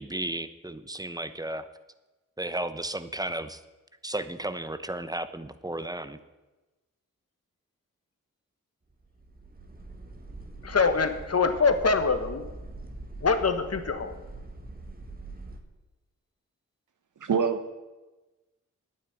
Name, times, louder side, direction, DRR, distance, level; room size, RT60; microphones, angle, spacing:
voice 1, 0.0-1.7 2.4-3.6 4.0-6.2, right 1 dB, 10° right, 12 dB, 0.9 m, -34 dB
sound 1, 9.0-15.6, right 2 dB, 30° right, 1.8 m, -43 dB
voice 2, 10.6-12.5 13.2-14.2, left 4 dB, 50° left, 8 dB, 1.4 m, -24 dB
voice 3, 17.2-17.7, right 6 dB, 70° right, 9 dB, 1.2 m, -25 dB
9.2 x 9.2 x 9.1 m, 1.1 s
cardioid pair, 50°, 32 cm